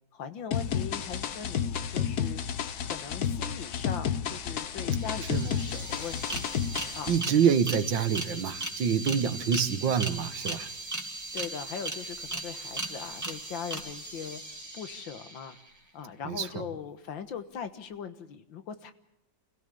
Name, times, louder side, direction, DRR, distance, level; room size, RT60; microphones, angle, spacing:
voice 1, 0.1-2.4 2.9-6.5 7.0-7.1 11.3-14.4 14.7-15.6 15.9-18.9, left 7 dB, 80° left, 10 dB, 2.1 m, -40 dB
sound 1, 0.5-7.2, left 8 dB, 60° left, 1.4 m, -31 dB
sound 2, 4.6-4.7 4.9-15.7, right 2 dB, 10° right, 2.5 m, -38 dB
voice 2, 7.1-10.7 16.2-16.5, right 7 dB, 75° right, 11 dB, 2.0 m, -26 dB
29.0 x 16.0 x 6.9 m, 0.82 s
omnidirectional pair, 2.1 m